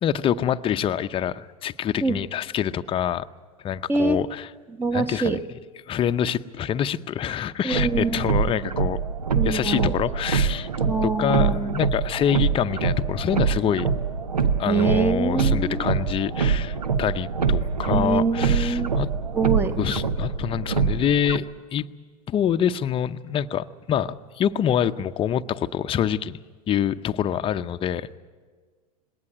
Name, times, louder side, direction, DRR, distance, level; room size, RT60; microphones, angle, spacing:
voice 1, 0.0-3.3 3.6-4.5 4.9-5.6 5.9-9.0 9.4-10.7 11.0-13.9 14.6-19.1 19.8-21.4 21.7-21.9 22.3-26.4 26.7-28.2, left 9 dB, 25° left, 11 dB, 0.7 m, -26 dB
voice 2, 4.8-5.4 7.6-8.2 9.3-9.9 10.9-11.8 14.7-15.8 17.9-18.9 19.3-19.7, right 4 dB, 10° right, 11 dB, 1.1 m, -24 dB
sound 1, 7.7-21.4, right 6 dB, 85° right, 0.9 m, -25 dB
20.5 x 18.0 x 9.0 m, 1.5 s
hypercardioid pair, 95°, 20 cm